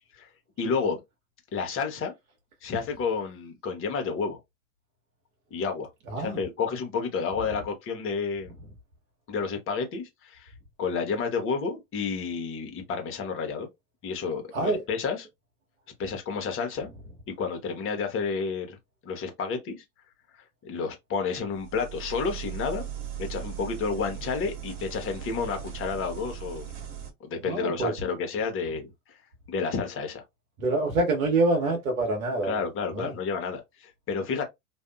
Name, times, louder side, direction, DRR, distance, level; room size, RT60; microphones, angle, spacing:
voice 1, 0.6-1.0 1.5-2.1 2.6-4.4 5.5-5.9 6.2-8.5 9.3-10.5 10.8-13.7 14.0-15.3 16.0-16.9 17.3-18.8 19.0-19.8 20.6-22.9 23.2-26.7 27.2-28.9 29.5-30.2 32.4-34.4, left 5 dB, 30° left, 1.0 m, -30 dB
sound 1, 21.5-27.1, right 9 dB, 45° right, 1.3 m, -38 dB
voice 2, 27.5-27.9 30.6-32.6 32.9-33.1, right 2 dB, 70° right, 1.0 m, -26 dB
2.6 x 2.3 x 2.3 m
figure-of-eight pair, 85°, 43 cm